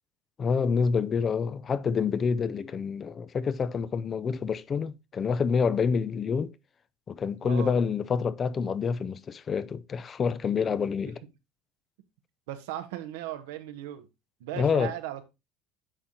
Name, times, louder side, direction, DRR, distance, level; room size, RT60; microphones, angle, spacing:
voice 1, 0.4-6.5 7.1-11.2 14.5-14.9, left 6 dB, 30° left, 0.4 m, -27 dB
voice 2, 7.4-7.8 12.5-14.1 14.4-15.2, right 13 dB, 85° right, 0.9 m, -37 dB
9.9 x 3.7 x 2.8 m
supercardioid pair, 110°, 0 cm